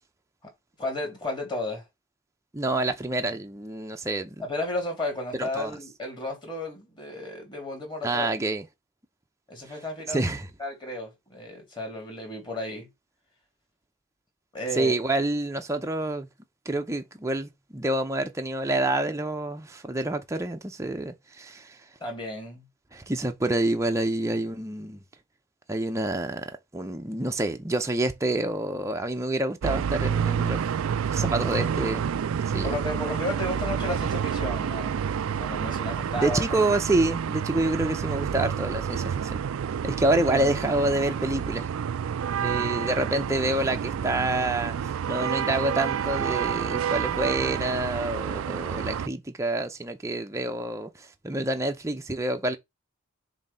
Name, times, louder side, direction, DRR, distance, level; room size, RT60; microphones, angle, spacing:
voice 1, 0.8-1.8 4.4-8.3 9.5-10.2 10.6-12.9 14.5-14.9 22.0-22.7 32.6-35.0 35.4-36.4, left 2 dB, 25° left, 3.1 m, -33 dB
voice 2, 2.5-4.3 5.4-5.7 8.0-8.7 10.1-10.5 14.7-16.3 16.7-21.8 22.9-25.0 25.7-30.6 31.1-32.0 32.4-32.8 36.1-39.4 39.8-41.7 42.4-44.8 45.1-52.6, right 2 dB, 15° right, 0.6 m, -27 dB
sound 1, 29.6-49.1, right 7 dB, 80° right, 0.4 m, -29 dB
7.3 x 2.8 x 5.5 m
head